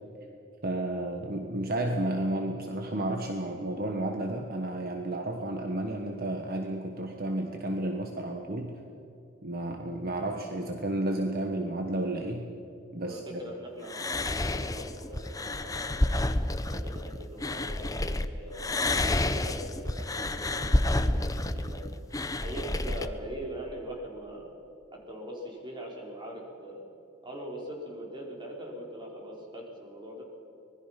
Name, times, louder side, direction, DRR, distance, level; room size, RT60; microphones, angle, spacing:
voice 1, 0.6-8.8 9.4-12.5 12.9-13.4, right 1 dB, 50° right, 3 dB, 1.4 m, -32 dB
voice 2, 13.1-16.0 16.7-18.7 19.1-22.0 22.4-24.5 24.9-26.8 27.2-30.2, right 1 dB, 25° right, -1 dB, 4.4 m, -42 dB
sound 1, 13.9-18.3 18.6-23.1, left 1 dB, 20° left, 0.8 m, -29 dB
25.0 x 20.0 x 5.9 m, 2.7 s
head